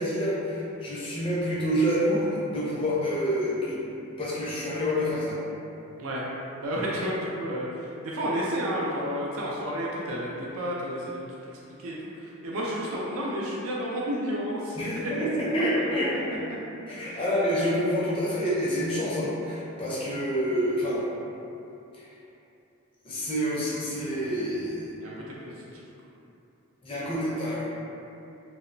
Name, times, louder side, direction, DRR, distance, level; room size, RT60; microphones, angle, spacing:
voice 1, 0.0-3.8 4.2-5.4 14.8-16.4 16.9-21.0 21.9-22.1 23.0-24.9 26.8-27.7, equal, 25° left, -7 dB, 0.4 m, -27 dB
voice 2, 6.6-11.2 11.5-14.8 15.0-16.2 17.0-17.2 25.0-25.8, equal, 65° right, -4 dB, 0.4 m, -32 dB
2.8 x 2.0 x 2.5 m, 2.8 s
head